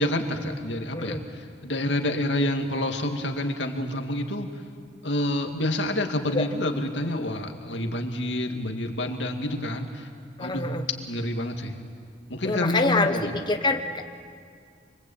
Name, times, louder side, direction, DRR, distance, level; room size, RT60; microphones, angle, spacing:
voice 1, 0.0-4.5 5.0-10.1 10.4-10.7 11.1-11.7 12.3-13.3, left 1 dB, 80° left, 4 dB, 2.3 m, -28 dB
voice 2, 10.4-10.8 12.4-14.0, left 3 dB, 25° left, 6 dB, 0.9 m, -26 dB
26.5 x 23.5 x 8.8 m, 2.2 s
head